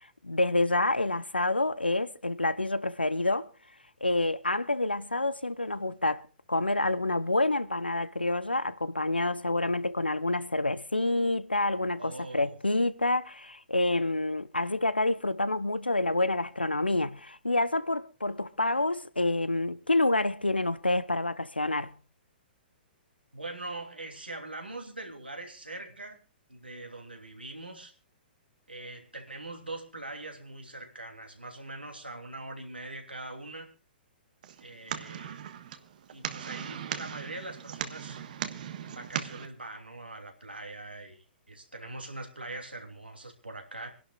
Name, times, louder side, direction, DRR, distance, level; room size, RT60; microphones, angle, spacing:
voice 1, 0.0-3.5 4.0-6.2 6.5-21.9, left 2 dB, 90° left, 0.7 m, -28 dB
voice 2, 11.9-12.6 23.3-26.2 26.5-27.9 28.7-33.7 34.6-35.4 36.1-38.2 38.8-43.9, right 2 dB, 90° right, 2.9 m, -42 dB
sound 1, 34.4-39.5, right 9 dB, 55° right, 1.3 m, -38 dB
27.5 x 11.5 x 2.4 m
figure-of-eight pair, 115°, 5 cm